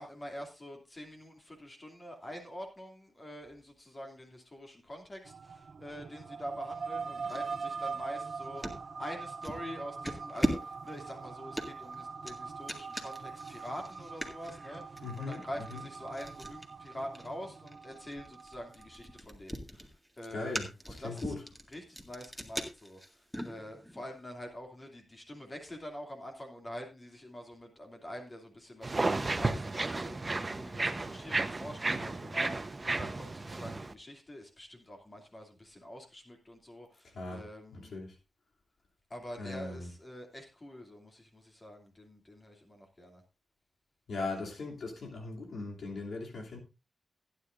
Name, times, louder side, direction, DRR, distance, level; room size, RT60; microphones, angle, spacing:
voice 1, 0.0-20.5 20.9-21.4 21.7-37.9 39.1-43.2, equal, 30° left, 2.7 m, -46 dB
sound 1, 5.2-19.2, right 5 dB, 60° right, 0.7 m, -42 dB
sound 2, 7.3-8.8 9.4-9.7 10.0-24.0, equal, ahead, 1.9 m, -40 dB
voice 2, 15.0-15.8 20.3-21.4 37.1-37.5 37.7-38.2 39.4-39.9 44.1-46.6, left 3 dB, 75° left, 3.0 m, -39 dB
sound 3, 28.8-33.9, right 2 dB, 30° right, 0.9 m, -33 dB
16.0 x 9.8 x 2.6 m
cardioid pair, 70°, 0 cm